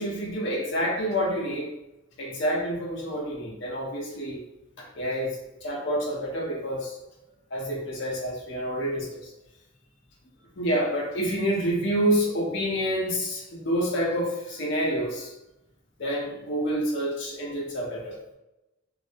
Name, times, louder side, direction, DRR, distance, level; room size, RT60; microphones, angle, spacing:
voice 1, 0.0-1.7 2.2-4.4 4.8-7.0 7.5-9.3 10.6-15.3 16.0-18.3, equal, 60° left, -2 dB, 0.5 m, -28 dB
2.3 x 2.1 x 2.5 m, 0.96 s
head